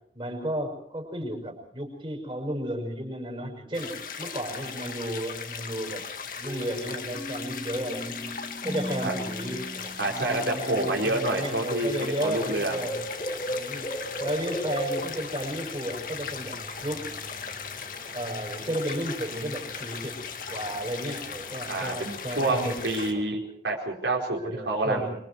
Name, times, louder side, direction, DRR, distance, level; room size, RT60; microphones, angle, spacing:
voice 1, 0.1-6.0 6.4-8.3 8.6-13.0 13.5-17.1 18.1-20.2 20.5-22.8 24.4-25.1, equal, 25° right, 0 dB, 6.0 m, -33 dB
sound 1, 3.7-23.1, left 6 dB, 50° left, 1.9 m, -38 dB
sound 2, 6.4-11.1, equal, 15° left, 0.9 m, -39 dB
voice 2, 10.0-12.9 21.7-23.4 23.6-25.2, right 2 dB, 80° right, -1 dB, 4.6 m, -28 dB
sound 3, 10.9-23.2, equal, 35° left, 2.9 m, -40 dB
26.0 x 24.0 x 4.8 m, 0.66 s
head